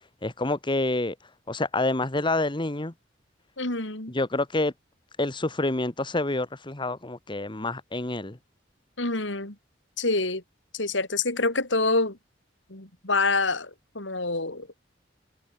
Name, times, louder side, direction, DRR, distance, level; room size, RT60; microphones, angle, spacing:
voice 1, 0.2-1.1 1.5-2.9 4.1-4.7 5.2-8.4, left 2 dB, 25° left, 1.6 m, -27 dB
voice 2, 3.6-4.1 9.0-9.5 10.0-10.4 10.7-12.2 12.7-14.7, left 3 dB, 80° left, 5.3 m, -26 dB
head